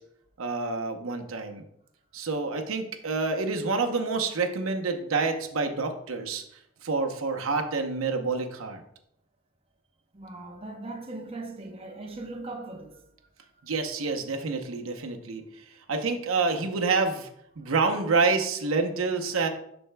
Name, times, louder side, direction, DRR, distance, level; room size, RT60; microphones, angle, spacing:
voice 1, 0.4-1.6 2.1-6.4 6.8-8.8 13.6-15.4 15.9-17.3 17.6-19.5, right 4 dB, 90° right, 0.8 m, -27 dB
voice 2, 10.1-13.0, right 2 dB, 30° right, 0.8 m, -39 dB
11.0 x 4.4 x 2.2 m
head